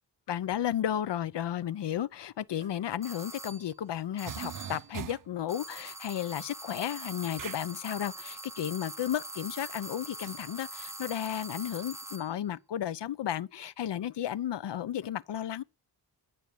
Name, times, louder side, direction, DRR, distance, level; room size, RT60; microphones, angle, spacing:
voice 1, 0.3-15.6, left 10 dB, 70° left, 0.8 m, -33 dB
sound 1, 2.6-2.7 3.9-4.0 4.3-5.4 7.4-7.6 10.2-10.3, right 9 dB, 45° right, 0.7 m, -41 dB
sound 2, 3.0-3.7 4.2-4.9 5.5-12.4, right 1 dB, 5° right, 1.1 m, -43 dB
14.5 x 5.9 x 6.9 m
wide cardioid pair, 100°, 43 cm